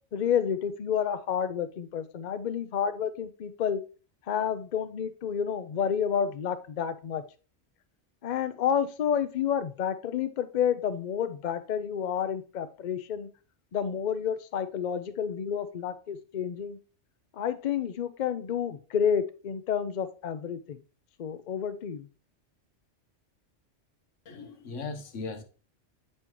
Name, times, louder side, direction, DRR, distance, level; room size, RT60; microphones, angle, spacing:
voice 1, 0.1-3.8 4.3-7.2 8.2-13.3 13.7-16.8 17.3-20.8 21.2-22.1, left 8 dB, 50° left, 0.6 m, -30 dB
voice 2, 24.2-25.4, left 4 dB, 90° left, 1.3 m, -38 dB
8.0 x 5.6 x 3.0 m
omnidirectional pair, 1.2 m